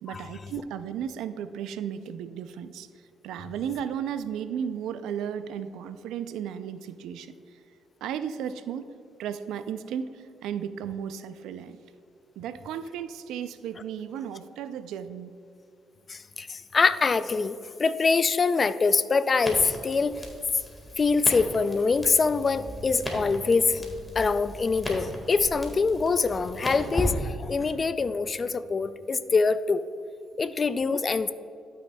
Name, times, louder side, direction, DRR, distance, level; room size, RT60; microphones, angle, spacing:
voice 1, 0.0-2.9 3.2-7.4 8.0-8.9 9.2-11.8 12.4-15.3, right 8 dB, 85° right, 12 dB, 0.4 m, -34 dB
voice 2, 16.1-20.2 21.0-29.8 30.4-31.3, left 4 dB, 35° left, 14 dB, 0.3 m, -24 dB
Crackle, 19.4-27.7, equal, 10° left, 1.7 m, -37 dB
12.0 x 6.3 x 2.2 m, 2.6 s
cardioid pair, 90°, 0 cm